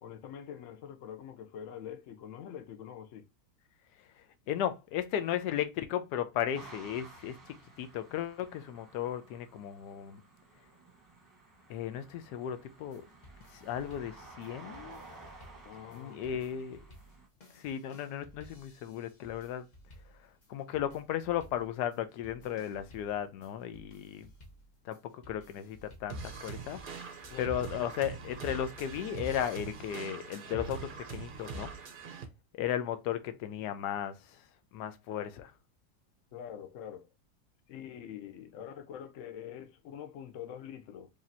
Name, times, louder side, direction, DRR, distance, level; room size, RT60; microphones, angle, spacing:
voice 1, 0.0-3.3 13.9-14.0 15.6-16.6 27.3-27.6 36.3-37.1 37.7-41.1, left 9 dB, 60° left, 0.9 m, -45 dB
voice 2, 4.5-10.2 11.7-13.1 13.5-15.0 15.9-16.8 17.5-19.7 20.5-24.3 24.8-31.7 32.5-34.4 34.7-35.5, left 10 dB, 85° left, 1.2 m, -35 dB
sound 1, 6.5-17.3, right 3 dB, 15° right, 0.8 m, -54 dB
sound 2, 12.8-29.7, equal, 35° left, 0.8 m, -57 dB
sound 3, 26.1-32.3, right 4 dB, 50° right, 0.6 m, -42 dB
5.0 x 2.8 x 2.6 m
omnidirectional pair, 1.7 m